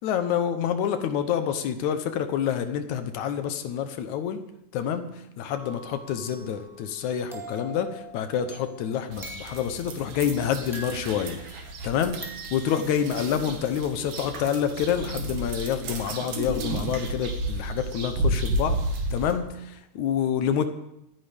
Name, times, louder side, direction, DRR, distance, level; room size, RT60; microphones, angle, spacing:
voice 1, 0.0-4.4 4.7-18.8 19.1-20.7, left 8 dB, 70° left, 9 dB, 2.1 m, -28 dB
sound 1, 5.5-9.9 10.7-11.8 12.2-13.2, equal, ahead, 1.6 m, -44 dB
sound 2, 9.1-19.3, right 1 dB, 70° right, 3.2 m, -32 dB
25.5 x 10.0 x 3.5 m, 0.83 s
omnidirectional pair, 3.8 m